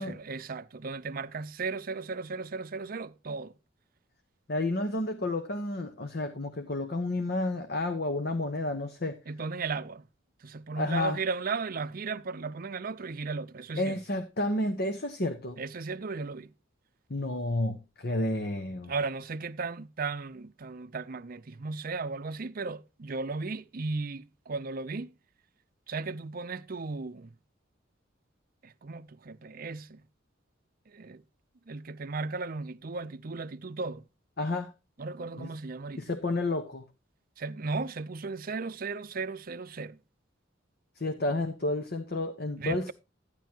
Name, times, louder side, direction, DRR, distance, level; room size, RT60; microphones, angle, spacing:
voice 1, 0.0-3.5 9.3-10.1 10.4-14.0 15.6-16.5 18.9-25.1 25.9-27.3 28.6-30.0 30.9-31.2 31.7-34.0 35.0-36.0 37.4-40.0 42.6-42.9, right 4 dB, 45° right, 0.6 m, -36 dB
voice 2, 4.5-9.2 10.8-11.2 13.8-15.6 17.1-18.9 34.4-34.7 35.4-35.5 36.0-36.8 41.0-42.9, left 2 dB, 55° left, 1.1 m, -31 dB
12.5 x 10.0 x 2.9 m
head